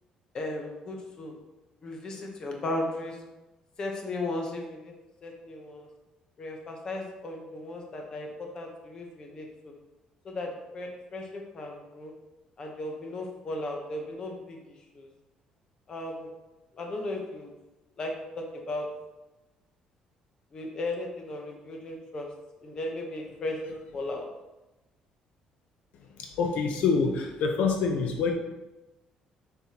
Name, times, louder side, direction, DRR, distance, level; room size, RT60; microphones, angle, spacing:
voice 1, 0.3-1.3 1.8-3.2 3.8-4.9 5.2-5.9 6.4-9.7 10.2-12.1 12.6-14.6 14.9-15.1 15.9-16.3 16.7-17.5 18.0-18.9 20.5-22.3 22.6-23.6 23.9-24.3, left 2 dB, 30° left, 1 dB, 1.0 m, -36 dB
voice 2, 26.4-28.3, left 5 dB, 70° left, 2 dB, 0.8 m, -26 dB
7.3 x 5.5 x 2.9 m, 1.0 s
cardioid pair, 165°, 2 cm